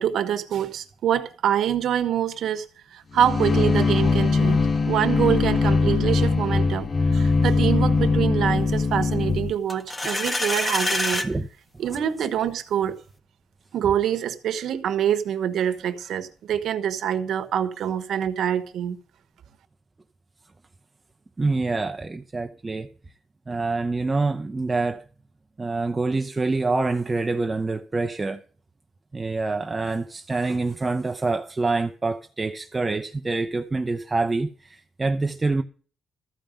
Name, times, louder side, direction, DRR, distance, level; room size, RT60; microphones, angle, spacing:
voice 1, 0.0-2.6 2.9-11.3 11.8-13.0 13.7-19.0, right 9 dB, 70° right, 1.2 m, -25 dB
sound 1, 3.2-9.5, left 4 dB, 40° left, 0.8 m, -21 dB
sound 2, 9.7-11.3, left 2 dB, 20° left, 1.5 m, -26 dB
voice 2, 21.4-22.9 23.5-25.0 25.6-28.4 29.1-35.6, right 3 dB, 25° right, 0.8 m, -26 dB
14.0 x 5.2 x 9.0 m
cardioid pair, 90°, 0 cm